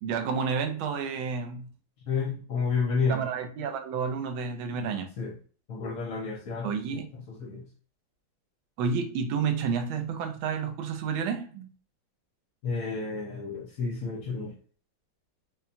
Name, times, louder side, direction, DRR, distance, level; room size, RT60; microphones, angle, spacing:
voice 1, 0.0-1.7 3.1-5.1 6.6-7.1 8.8-11.7, right 6 dB, 80° right, 1.5 m, -30 dB
voice 2, 2.1-3.2 5.2-5.3 5.7-7.7 12.6-14.6, left 4 dB, 65° left, 0.9 m, -31 dB
5.6 x 2.2 x 2.6 m
omnidirectional pair, 2.3 m